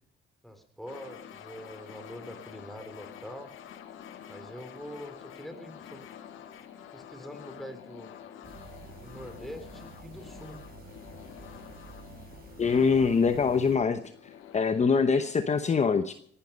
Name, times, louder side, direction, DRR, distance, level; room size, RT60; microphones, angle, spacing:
voice 1, 0.4-3.5 4.3-6.0 6.9-8.1 9.0-10.6, equal, ahead, 8 dB, 3.2 m, -44 dB
sound 1, 0.9-15.3, left 9 dB, 85° left, 1.7 m, -48 dB
sound 2, 8.4-13.8, right 4 dB, 50° right, 5.7 m, -49 dB
voice 2, 12.6-14.0 14.5-16.1, left 5 dB, 35° left, 9 dB, 1.0 m, -24 dB
18.5 x 11.5 x 5.4 m, 0.65 s
cardioid pair, 90°, 20 cm